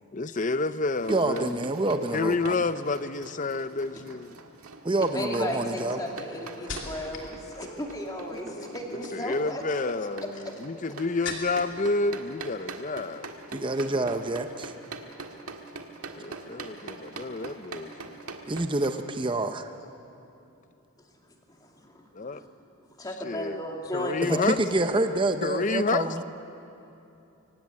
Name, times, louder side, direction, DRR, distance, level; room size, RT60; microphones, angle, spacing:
voice 1, 0.1-1.6 2.1-4.4 8.3-13.3 13.9-14.4 16.2-18.2 22.1-22.4 23.2-23.6 23.9-24.6 25.4-26.2, left 3 dB, 35° left, 0.6 m, -30 dB
sound 1, 0.9-18.9, right 3 dB, 80° right, 1.7 m, -43 dB
voice 2, 1.1-2.6 4.8-6.0 13.5-14.7 18.5-19.7 24.2-26.2, right 2 dB, 20° right, 0.7 m, -27 dB
sound 2, 3.9-4.2 4.9-7.3 7.6-8.1 9.4-11.8 12.1-12.8 13.0-13.3, left 5 dB, 55° left, 2.7 m, -42 dB
voice 3, 5.0-9.6 10.2-10.3 21.5-22.5 23.0-24.8, left 1 dB, 15° left, 2.6 m, -35 dB
24.0 x 16.5 x 9.6 m
head